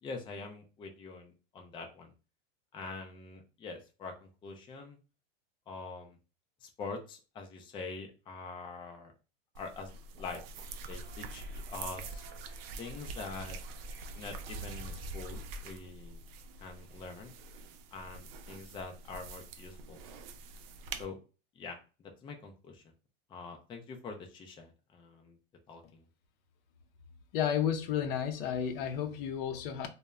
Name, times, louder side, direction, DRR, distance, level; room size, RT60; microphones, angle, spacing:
voice 1, 0.0-2.1 2.7-5.0 5.7-6.2 6.6-9.1 9.5-9.9 10.2-10.4 10.9-12.2 12.8-13.6 14.2-16.2 16.6-17.3 17.9-20.0 21.0-21.2 21.5-22.8 23.3-25.4 25.7-26.1, left 4 dB, 15° left, 0.4 m, -44 dB
sound 1, 9.5-21.0, right 3 dB, 70° right, 0.5 m, -46 dB
sound 2, 10.6-15.6, right 1 dB, 35° right, 0.7 m, -48 dB
voice 2, 27.3-29.9, left 8 dB, 65° left, 0.6 m, -32 dB
2.0 x 2.0 x 3.4 m
supercardioid pair, 120°, 30 cm